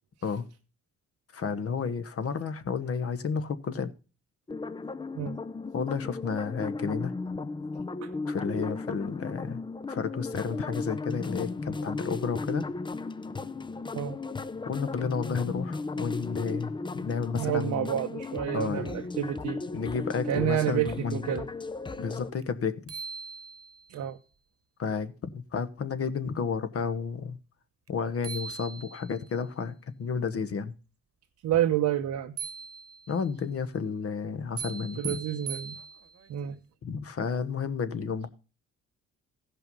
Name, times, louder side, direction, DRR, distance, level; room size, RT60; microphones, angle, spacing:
voice 1, 1.3-3.9 5.7-7.2 8.3-9.6 9.9-12.7 14.7-17.9 18.5-18.9 19.7-21.3 22.0-22.8 24.8-27.4 27.9-30.7 33.1-35.2 36.8-38.3, left 6 dB, 50° left, 1.2 m, -32 dB
sound 1, 4.5-22.3, left 3 dB, 15° left, 0.6 m, -35 dB
voice 2, 17.4-19.6 20.3-21.5 23.9-24.2 31.4-32.4 35.0-35.8 36.3-36.6, right 11 dB, 75° right, 0.9 m, -29 dB
sound 2, 22.4-22.5 22.9-24.0 27.9-28.0 28.2-29.3 32.4-33.3 34.6-36.3, right 6 dB, 50° right, 1.2 m, -40 dB
15.5 x 5.7 x 5.4 m
cardioid pair, 90°, 30 cm